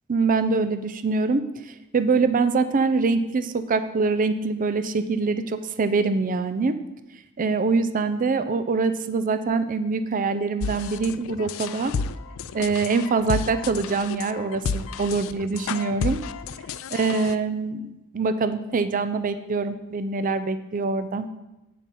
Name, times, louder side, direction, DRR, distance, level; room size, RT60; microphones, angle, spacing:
voice 1, 0.1-6.8 7.4-11.9 12.5-16.2 16.9-21.3, right 4 dB, 40° right, 11 dB, 0.5 m, -24 dB
sound 1, 10.6-17.3, left 5 dB, 65° left, 0.4 m, -32 dB
8.5 x 7.1 x 4.2 m, 0.98 s
head